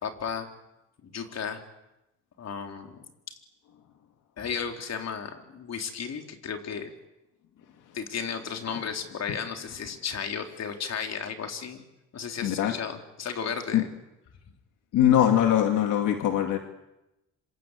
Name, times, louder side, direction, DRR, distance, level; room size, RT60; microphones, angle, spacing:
voice 1, 0.0-0.5 1.0-1.6 2.4-3.4 4.4-6.9 7.9-11.8 12.1-13.9, left 6 dB, 60° left, 5 dB, 4.1 m, -34 dB
voice 2, 12.4-12.7 13.7-13.8 14.9-16.6, left 11 dB, 85° left, 5 dB, 2.3 m, -22 dB
26.5 x 26.5 x 8.5 m, 0.94 s
cardioid pair, 90°, 30 cm